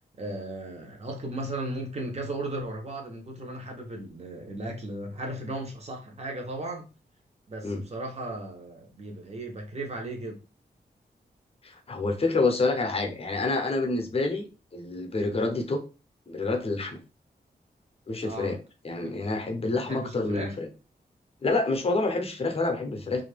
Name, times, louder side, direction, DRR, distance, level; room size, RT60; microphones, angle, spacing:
voice 1, 0.2-6.9 7.5-10.4 18.2-18.5 19.0-19.1 19.9-20.6, right 1 dB, 40° right, 0.8 m, -36 dB
voice 2, 11.6-14.5 14.7-15.8 16.3-17.0 18.1-18.6 18.8-20.7 21.4-23.2, left 3 dB, 35° left, 0.6 m, -27 dB
2.6 x 2.4 x 3.3 m
wide cardioid pair, 165°, 17 cm